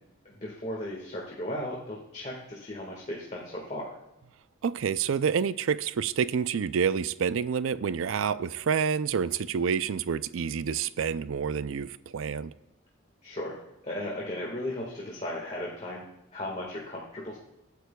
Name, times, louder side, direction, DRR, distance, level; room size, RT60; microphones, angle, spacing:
voice 1, 0.2-3.9 13.2-13.6 13.8-16.0 16.3-17.4, left 1 dB, 35° left, 1.7 m, -36 dB
voice 2, 4.6-12.5, right 6 dB, 75° right, 0.4 m, -28 dB
22.5 x 9.3 x 2.3 m
head